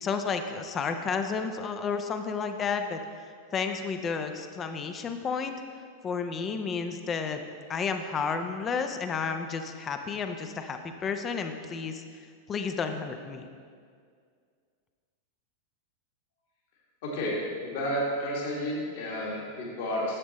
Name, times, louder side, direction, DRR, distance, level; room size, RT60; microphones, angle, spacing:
voice 1, 0.0-3.0 3.5-5.6 6.0-7.4 7.7-12.0 12.5-13.5, left 5 dB, 25° left, 7 dB, 0.5 m, -31 dB
voice 2, 17.0-20.2, equal, 50° left, -3 dB, 1.7 m, -31 dB
11.0 x 7.2 x 3.0 m, 2.1 s
figure-of-eight pair, 90°, 0 cm